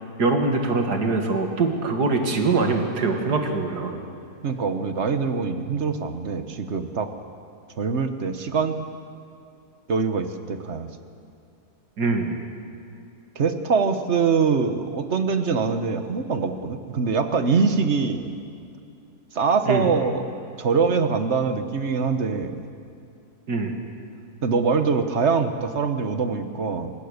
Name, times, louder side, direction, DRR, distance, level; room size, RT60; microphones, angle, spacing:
voice 1, 0.2-4.0 12.0-12.4 19.7-19.9 23.5-23.7, right 3 dB, 90° right, 3 dB, 2.7 m, -23 dB
voice 2, 4.4-7.1 7.8-8.8 9.9-10.9 13.3-18.3 19.3-20.3 20.6-22.6 24.4-26.9, right 5 dB, 45° right, 8 dB, 1.4 m, -23 dB
24.5 x 19.5 x 6.7 m, 2.5 s
omnidirectional pair, 1.7 m